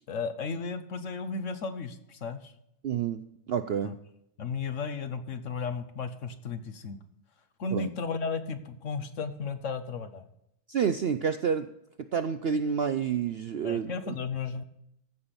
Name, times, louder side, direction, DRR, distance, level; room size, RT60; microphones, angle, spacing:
voice 1, 0.1-2.5 3.8-4.0 4.4-7.0 7.6-10.3 13.6-14.6, left 5 dB, 55° left, 10 dB, 1.3 m, -34 dB
voice 2, 2.8-4.0 7.7-7.9 10.7-11.7 12.0-14.1, right 7 dB, 60° right, 10 dB, 0.6 m, -29 dB
15.0 x 5.8 x 6.9 m, 0.78 s
omnidirectional pair, 1.6 m